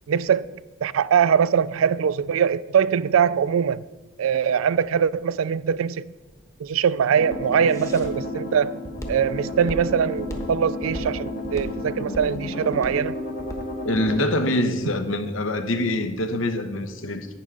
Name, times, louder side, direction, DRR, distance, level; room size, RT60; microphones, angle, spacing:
voice 1, 0.1-0.5 0.8-3.9 4.2-6.1 6.6-8.8 9.1-13.2, right 7 dB, 90° right, 0.4 m, -22 dB
Walk footsteps, 6.3-14.2, equal, 15° left, 1.1 m, -38 dB
sound 1, 7.2-14.3, left 1 dB, 45° left, 1.6 m, -32 dB
voice 2, 13.8-17.3, left 1 dB, 75° left, 1.0 m, -24 dB
11.5 x 9.2 x 3.7 m
head